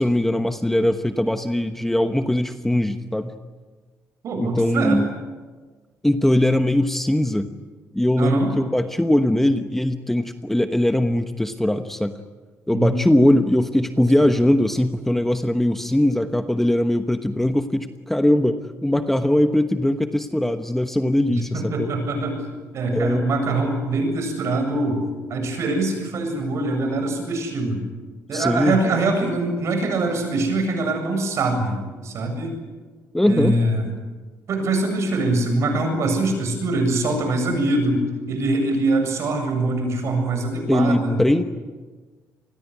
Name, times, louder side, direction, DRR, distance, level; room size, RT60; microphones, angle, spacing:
voice 1, 0.0-3.3 4.4-5.1 6.0-7.5 7.9-12.1 12.7-21.9 22.9-23.3 28.3-28.8 33.1-33.6 40.7-41.4, left 1 dB, 5° left, 8 dB, 1.1 m, -20 dB
voice 2, 4.2-5.0 8.2-8.5 12.7-12.9 14.0-14.1 21.3-22.4 22.7-25.0 25.3-27.8 28.3-32.5 33.2-33.9 34.5-41.2, right 2 dB, 55° right, 6 dB, 7.8 m, -23 dB
28.0 x 21.0 x 9.8 m, 1.4 s
cardioid pair, 140°, 6 cm